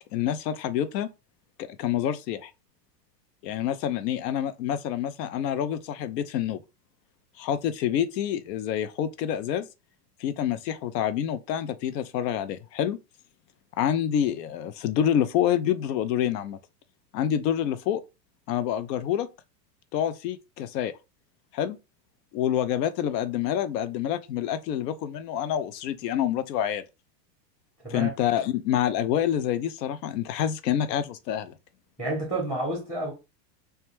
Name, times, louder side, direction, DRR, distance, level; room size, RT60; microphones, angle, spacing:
voice 1, 0.1-1.1 1.8-2.5 3.4-6.6 7.4-9.7 10.2-13.0 13.8-16.6 17.1-18.0 18.5-19.3 19.9-20.9 21.5-21.8 22.3-26.8 27.9-31.5, left 10 dB, 75° left, 0.5 m, -27 dB
voice 2, 32.0-33.1, right 2 dB, ahead, 0.7 m, -29 dB
2.2 x 2.2 x 3.0 m
supercardioid pair, 140°, 50 cm